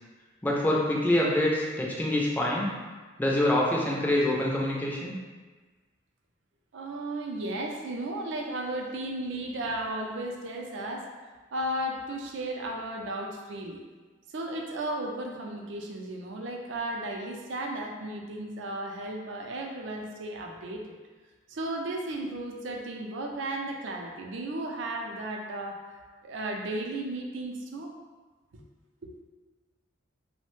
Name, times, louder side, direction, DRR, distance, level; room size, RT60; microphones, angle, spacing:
voice 1, 0.4-2.7 3.2-5.1, left 1 dB, 10° left, -4 dB, 0.4 m, -25 dB
voice 2, 6.7-11.1 11.5-13.8 14.3-20.9 21.5-27.9 28.5-28.6 29.0-29.1, right 1 dB, 65° right, 1 dB, 0.4 m, -34 dB
3.1 x 2.1 x 3.1 m, 1.3 s
head